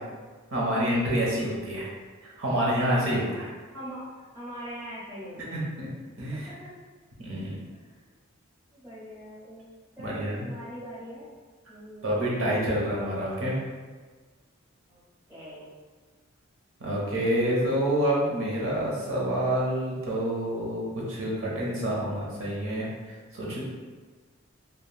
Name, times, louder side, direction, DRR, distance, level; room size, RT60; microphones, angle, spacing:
voice 1, 0.5-1.9 2.2-3.5 5.4-5.9 6.2-6.5 7.2-7.6 10.0-10.5 12.0-13.6 16.8-22.9 23.3-23.6, right 1 dB, 85° right, -5 dB, 0.8 m, -27 dB
voice 2, 3.7-4.0 4.3-5.6 6.3-6.7 7.7-8.1 8.7-11.3 11.7-12.2 14.9-15.0 15.3-15.7, equal, 20° right, -11 dB, 1.3 m, -42 dB
3.3 x 2.3 x 2.3 m, 1.4 s
head